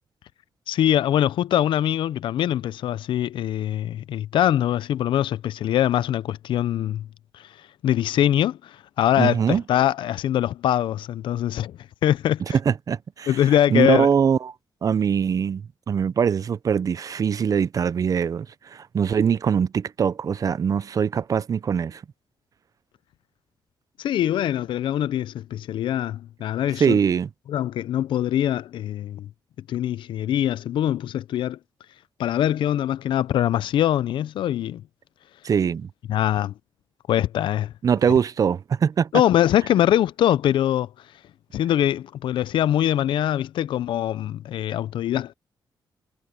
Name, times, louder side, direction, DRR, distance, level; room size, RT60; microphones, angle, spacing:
voice 1, 0.7-7.1 7.3-7.5 7.8-12.6 13.3-14.1 24.0-27.0 27.5-29.3 29.7-31.6 32.2-34.8 36.1-36.5 37.1-37.7 39.1-40.9 41.5-45.3, left 11 dB, 90° left, 0.5 m, -23 dB
voice 2, 9.2-9.6 12.7-13.3 13.7-14.5 14.8-22.0 26.8-27.3 35.4-35.9 37.8-39.1, right 7 dB, 45° right, 0.5 m, -22 dB
cardioid pair, 120°, 8 cm